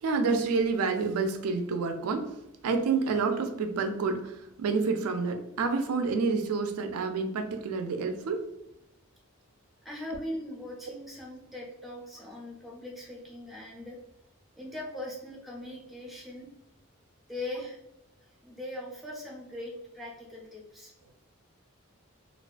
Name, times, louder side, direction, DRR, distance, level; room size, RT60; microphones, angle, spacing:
voice 1, 0.0-2.3 2.6-8.5, right 4 dB, 85° right, 0.4 m, -28 dB
voice 2, 9.8-14.0 14.6-16.5 17.3-17.8 18.2-20.9, left 1 dB, ahead, 0.5 m, -40 dB
2.3 x 2.3 x 2.4 m
head